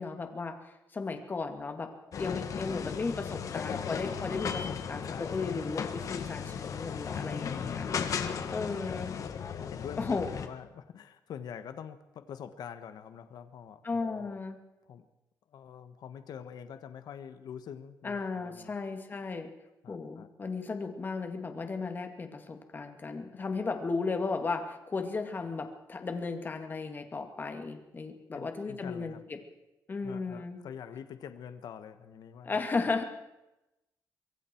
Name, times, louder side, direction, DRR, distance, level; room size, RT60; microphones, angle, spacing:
voice 1, 0.0-7.8 8.5-9.2 10.0-10.3 13.8-14.6 18.0-19.5 19.9-29.4 29.9-30.6 32.4-33.0, left 4 dB, 25° left, 6 dB, 2.3 m, -35 dB
sound 1, 2.1-10.5, left 7 dB, 50° left, 1.7 m, -36 dB
voice 2, 5.0-5.6 7.4-9.2 9.7-14.4 14.9-15.1 15.5-18.7 19.8-20.3 28.3-29.2 30.0-32.8, left 8 dB, 70° left, 10 dB, 1.3 m, -45 dB
25.0 x 23.0 x 4.6 m, 0.95 s
wide cardioid pair, 165°, 7 cm